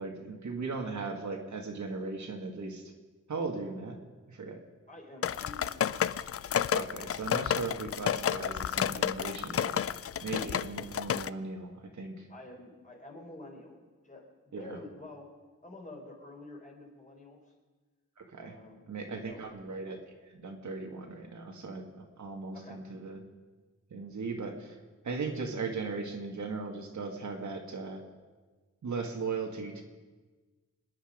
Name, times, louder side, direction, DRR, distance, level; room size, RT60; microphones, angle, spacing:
voice 1, 0.0-2.9 3.3-4.0 4.3-4.6 6.7-9.8 10.2-11.7 11.9-12.3 14.5-14.8 18.2-18.5 18.9-20.0 20.3-23.2 23.9-24.8 25.0-28.0 28.8-29.8, right 4 dB, 65° right, 2 dB, 2.1 m, -38 dB
voice 2, 4.9-6.3 12.3-15.3 15.6-17.5 18.4-18.8 19.1-19.4 22.5-22.8, left 2 dB, 25° left, 0 dB, 3.9 m, -49 dB
sound 1, 5.2-11.3, left 9 dB, 45° left, 0.4 m, -31 dB
26.0 x 10.0 x 5.2 m, 1.3 s
wide cardioid pair, 120°, 32 cm